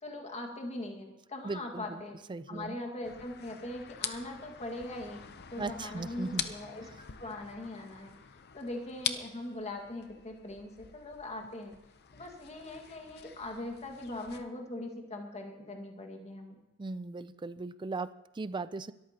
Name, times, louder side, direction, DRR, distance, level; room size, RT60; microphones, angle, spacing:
voice 1, 0.0-2.2 2.5-5.2 5.5-6.9 7.2-8.2 8.5-11.7 12.1-16.6, left 1 dB, 30° left, 3 dB, 1.8 m, -41 dB
voice 2, 1.4-2.0 2.3-2.8 5.6-6.5 16.8-18.9, right 3 dB, 20° right, 15 dB, 0.4 m, -38 dB
sound 1, 3.0-14.4, left 9 dB, 50° left, 0.7 m, -44 dB
22.5 x 13.5 x 2.9 m, 0.95 s
head